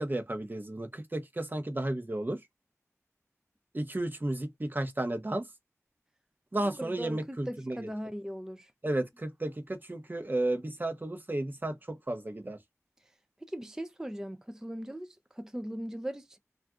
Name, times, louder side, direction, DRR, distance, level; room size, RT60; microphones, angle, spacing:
voice 1, 0.0-2.4 3.7-5.5 6.5-7.9 8.8-12.6, right 1 dB, 35° right, 0.8 m, -33 dB
voice 2, 6.8-8.7 13.4-16.4, equal, 10° right, 0.4 m, -39 dB
2.5 x 2.3 x 3.5 m
wide cardioid pair, 45°, 5 cm